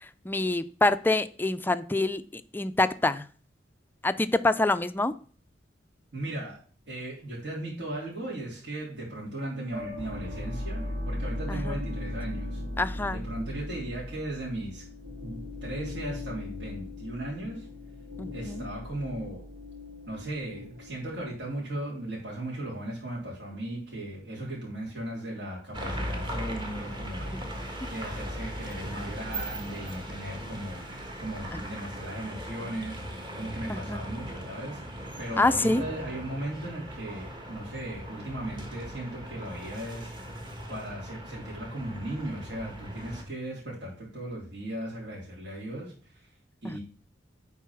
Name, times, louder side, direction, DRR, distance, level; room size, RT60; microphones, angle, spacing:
voice 1, 0.3-2.2 2.5-3.2 4.0-5.1 11.5-11.8 12.8-13.2 18.2-18.6 33.7-34.0 35.4-35.8 46.7-46.8, left 2 dB, 10° left, 12 dB, 0.4 m, -26 dB
voice 2, 6.1-6.6 6.9-12.6 13.1-14.8 15.2-17.7 18.3-19.4 20.1-40.1 40.7-46.3 46.6-46.8, right 1 dB, 65° right, -5 dB, 3.5 m, -37 dB
sound 1, 9.7-21.6, left 1 dB, 90° right, 2.2 m, -38 dB
sound 2, 25.7-43.3, equal, 25° right, 1.5 m, -38 dB
9.3 x 4.1 x 5.8 m, 0.42 s
head